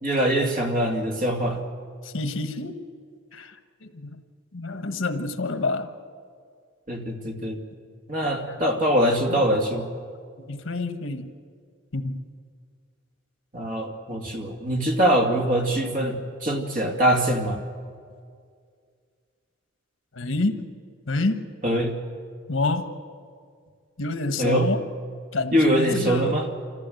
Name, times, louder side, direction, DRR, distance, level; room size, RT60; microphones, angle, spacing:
voice 1, 0.0-1.6 6.9-7.6 8.1-9.8 13.5-17.6 21.6-21.9 24.4-24.7 25.5-26.5, right 1 dB, 40° right, 2 dB, 2.3 m, -23 dB
voice 2, 2.0-2.8 3.3-3.5 3.8-4.2 4.5-5.9 8.5-8.6 9.3-9.4 9.7-9.8 10.5-11.3 11.9-12.2 20.1-20.7 21.1-21.5 22.5-22.9 24.0-24.8 25.3-26.4, left 2 dB, 85° left, 9 dB, 1.2 m, -28 dB
25.5 x 14.5 x 7.8 m, 2.2 s
head